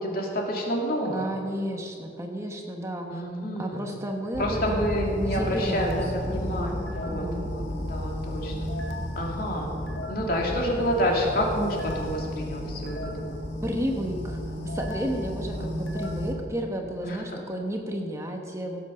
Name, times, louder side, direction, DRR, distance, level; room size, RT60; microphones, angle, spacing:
voice 1, 0.0-1.3 3.1-3.9 4.4-8.7 9.1-9.7 10.1-13.0 13.2-13.4 15.5-15.7 17.0-17.2, equal, 55° left, -1 dB, 2.7 m, -29 dB
voice 2, 1.1-3.2 3.6-4.9 5.1-6.8 7.1-7.5 13.6-14.4 14.6-18.8, equal, 15° right, 2 dB, 1.1 m, -32 dB
sound 1, 4.3-16.4, left 1 dB, 80° left, 1.7 m, -33 dB
16.5 x 8.1 x 6.7 m, 2.3 s
head